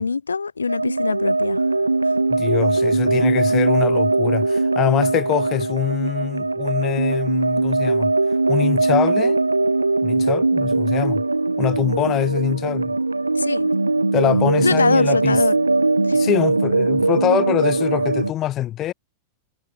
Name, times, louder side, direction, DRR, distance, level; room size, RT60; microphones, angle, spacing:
voice 1, 0.0-1.7 2.0-2.1 12.1-12.3 13.3-13.7 14.6-15.6 16.0-16.2, left 4 dB, 75° left, 3.5 m, -23 dB
sound 1, 0.7-18.3, right 3 dB, 80° right, 0.5 m, -20 dB
voice 2, 2.3-8.1 8.5-9.4 10.0-11.2 11.6-12.9 14.1-15.4 16.1-18.9, left 13 dB, 30° left, 3.1 m, -24 dB
figure-of-eight pair, 90°, 0 cm